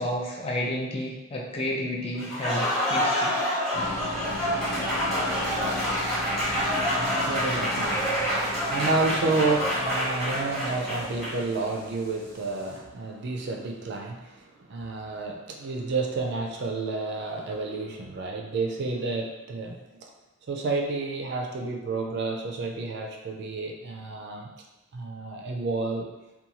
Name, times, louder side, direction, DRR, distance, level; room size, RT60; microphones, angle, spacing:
voice 1, 0.0-3.3, left 1 dB, 25° left, -2 dB, 0.3 m, -31 dB
Applause, 2.2-11.5, equal, ahead, 0.8 m, -27 dB
sound 1, 3.7-12.8, left 1 dB, 60° left, 1.0 m, -38 dB
voice 2, 6.1-20.1 20.5-24.5 24.9-26.1, right 3 dB, 50° right, 1 dB, 0.4 m, -30 dB
2.6 x 2.2 x 2.8 m, 1.0 s
head